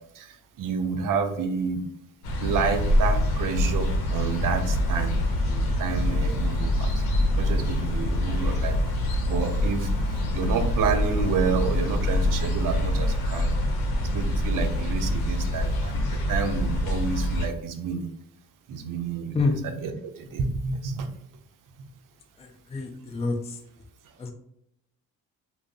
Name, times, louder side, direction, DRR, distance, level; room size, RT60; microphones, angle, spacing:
voice 1, 0.0-1.8 2.4-5.2 5.4-8.8 9.2-13.5 14.0-18.1 18.7-21.1, right 5 dB, 60° right, 7 dB, 0.6 m, -30 dB
sound 1, 2.2-17.5, left 1 dB, 75° left, 0.7 m, -25 dB
voice 2, 22.7-23.3 24.2-24.3, left 3 dB, 15° left, 4 dB, 0.4 m, -26 dB
2.4 x 2.0 x 3.5 m, 0.75 s
supercardioid pair, 60°, 38 cm